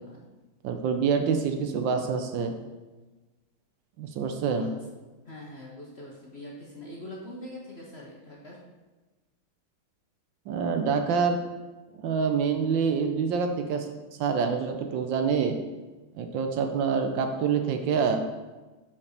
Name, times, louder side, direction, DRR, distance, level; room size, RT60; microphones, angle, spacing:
voice 1, 0.6-2.5 4.0-4.7 10.5-11.4 12.0-13.9 14.2-15.6 16.2-18.2, right 6 dB, 75° right, 6 dB, 1.3 m, -26 dB
voice 2, 5.2-8.7, left 1 dB, 40° left, -3 dB, 1.0 m, -43 dB
5.3 x 5.3 x 6.4 m, 1.2 s
omnidirectional pair, 2.2 m